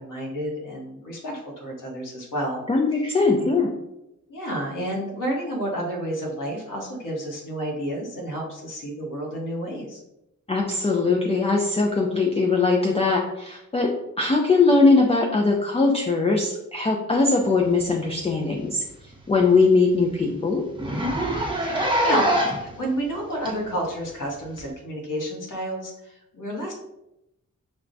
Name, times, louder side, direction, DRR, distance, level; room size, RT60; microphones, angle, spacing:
voice 1, 0.0-2.6 3.0-3.1 4.3-10.0 21.6-26.7, right 1 dB, 85° left, -1 dB, 1.1 m, -30 dB
voice 2, 2.7-3.7 10.5-13.9 14.2-18.8 19.3-20.6, left 3 dB, 20° left, 1 dB, 0.3 m, -20 dB
Zipper (clothing), 18.1-18.3 18.7-18.8 19.1-19.2 19.6-19.7 19.9-20.1 20.7-22.7 23.5-23.6 24.6-24.7, equal, 15° right, 0.7 m, -24 dB
5.6 x 2.1 x 2.5 m, 0.87 s
wide cardioid pair, 145°, 31 cm